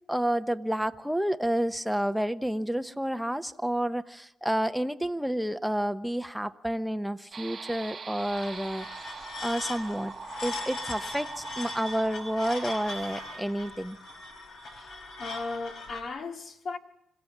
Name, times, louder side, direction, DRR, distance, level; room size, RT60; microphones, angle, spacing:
voice 1, 0.1-8.9 9.4-10.1 10.4-14.0, equal, ahead, 0.9 m, -30 dB
sound 1, 7.3-13.4, right 5 dB, 40° right, 1.1 m, -43 dB
sound 2, 8.2-16.0, left 2 dB, 70° left, 4.6 m, -40 dB
voice 2, 14.6-16.8, left 3 dB, 55° left, 2.2 m, -37 dB
26.0 x 15.5 x 7.3 m
cardioid pair, 90°, 0 cm